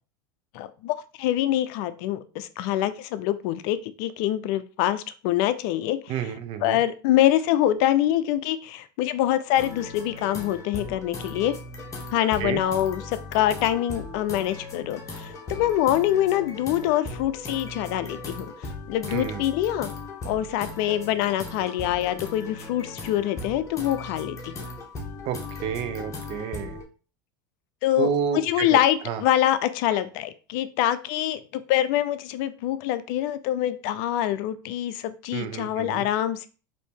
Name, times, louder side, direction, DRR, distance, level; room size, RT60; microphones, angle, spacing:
voice 1, 0.5-6.1 6.6-11.5 12.1-19.9 20.2-24.5 27.8-36.5, left 12 dB, 65° left, 0.4 m, -25 dB
voice 2, 6.1-6.8 12.4-12.6 19.1-19.5 25.2-26.8 28.0-28.8 29.1-29.2 35.3-36.1, right 8 dB, 50° right, 0.6 m, -30 dB
sound 1, 9.6-26.8, left 2 dB, 30° left, 1.2 m, -38 dB
4.1 x 2.7 x 3.5 m
supercardioid pair, 110°, 11 cm